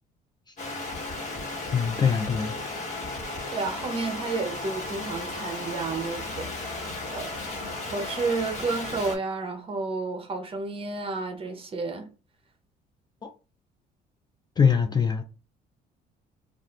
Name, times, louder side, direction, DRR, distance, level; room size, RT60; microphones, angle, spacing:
sound 1, 0.6-9.2, left 2 dB, 40° left, 1.4 m, -35 dB
voice 1, 1.7-2.5 13.2-13.3 14.6-15.2, left 6 dB, 25° left, 0.3 m, -23 dB
voice 2, 3.5-12.1, right 3 dB, 35° right, 0.8 m, -31 dB
2.6 x 2.4 x 3.3 m
cardioid pair, 110°, 17 cm